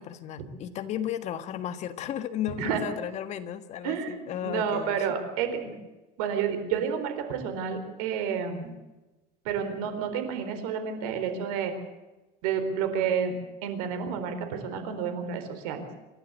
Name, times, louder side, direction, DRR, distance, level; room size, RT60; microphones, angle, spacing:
voice 1, 0.0-5.1, left 10 dB, 40° left, 9 dB, 1.6 m, -34 dB
voice 2, 3.8-5.8 6.2-8.7 9.4-11.7 12.4-13.3 13.6-15.9, right 7 dB, 85° right, 8 dB, 4.3 m, -30 dB
28.0 x 12.0 x 8.4 m, 1.1 s
cardioid pair, 155°, 18 cm